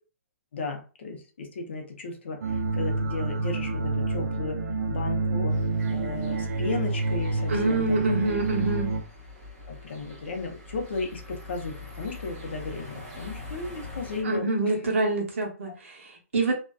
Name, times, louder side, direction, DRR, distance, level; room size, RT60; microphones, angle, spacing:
voice 1, 0.5-4.6 4.9-5.6 5.9-8.0 9.7-14.5, left 3 dB, 50° left, 3 dB, 0.6 m, -35 dB
sound 1, 2.4-9.0, right 3 dB, 80° right, 0.4 m, -28 dB
sound 2, 5.5-14.2, left 2 dB, 20° right, 0.9 m, -44 dB
voice 2, 7.5-9.0 14.2-16.5, right 2 dB, 55° right, 0 dB, 0.8 m, -26 dB
2.5 x 2.2 x 2.2 m, 0.35 s
hypercardioid pair, 180°, 8 cm